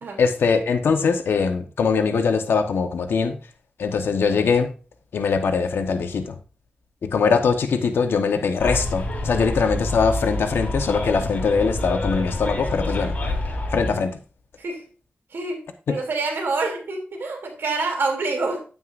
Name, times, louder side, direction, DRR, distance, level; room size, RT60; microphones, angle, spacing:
voice 1, 0.2-3.4 3.8-4.7 5.1-6.4 7.0-13.2 13.7-14.2, left 5 dB, 85° left, 1.2 m, -22 dB
Bus, 8.6-13.9, left 1 dB, 45° left, 3.3 m, -27 dB
voice 2, 15.3-18.6, right 3 dB, 75° right, 2.9 m, -27 dB
9.6 x 9.2 x 2.6 m
wide cardioid pair, 90°, 4 cm